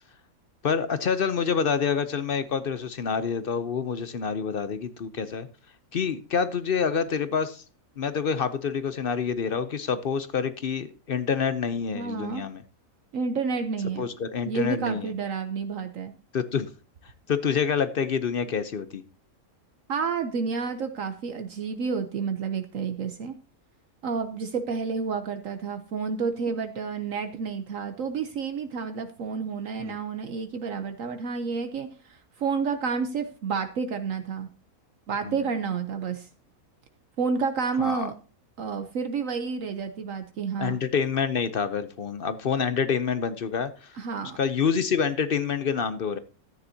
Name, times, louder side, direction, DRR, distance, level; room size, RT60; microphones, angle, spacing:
voice 1, 0.6-5.5 5.9-7.6 8.0-12.6 14.0-15.1 16.3-16.7 17.3-19.0 29.8-30.0 35.2-35.4 37.8-38.1 40.6-44.0 44.4-46.2, left 6 dB, 50° left, 0.7 m, -27 dB
voice 2, 11.9-12.4 13.1-14.1 14.4-16.1 19.9-23.3 24.0-34.5 35.1-36.3 37.2-38.1 38.6-40.8 44.0-44.4, right 5 dB, 65° right, 1.1 m, -30 dB
13.5 x 9.6 x 2.8 m
omnidirectional pair, 1.6 m